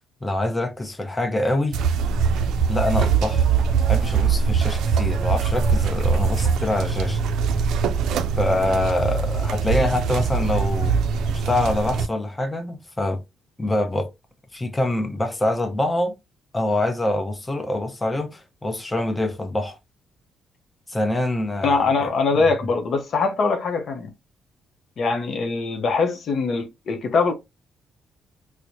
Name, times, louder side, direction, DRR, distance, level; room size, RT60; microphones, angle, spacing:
voice 1, 0.2-1.8 2.7-3.5 3.9-7.2 8.4-11.0 11.3-13.2 13.6-14.1 14.5-16.1 16.5-19.8 20.9-22.5, left 1 dB, 15° left, 0.8 m, -25 dB
sound 1, 1.7-12.1, right 6 dB, 80° right, 0.4 m, -22 dB
voice 2, 21.6-24.1 25.0-27.3, left 4 dB, 60° left, 0.7 m, -22 dB
4.4 x 2.1 x 2.6 m
cardioid pair, 90°, 0 cm